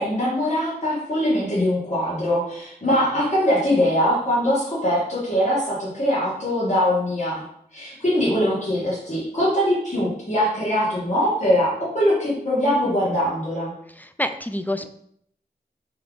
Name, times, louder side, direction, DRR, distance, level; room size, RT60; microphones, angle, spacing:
voice 1, 0.0-7.4 7.7-13.7, equal, 45° left, -9 dB, 1.6 m, -22 dB
voice 2, 14.0-14.9, left 1 dB, 10° left, 9 dB, 0.3 m, -27 dB
3.8 x 3.4 x 3.5 m, 0.69 s
wide cardioid pair, 45°, 17 cm